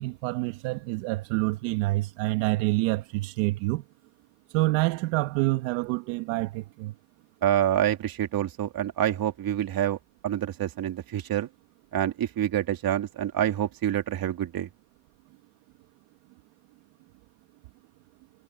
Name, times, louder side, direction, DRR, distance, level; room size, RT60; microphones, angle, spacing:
voice 1, 0.0-3.8 4.5-6.9, right 20 dB, 90° right, 2.0 m, -27 dB
voice 2, 7.4-10.0 10.2-11.5 11.9-14.7, right 11 dB, 60° right, 3.2 m, -27 dB
supercardioid pair, 65°, 39 cm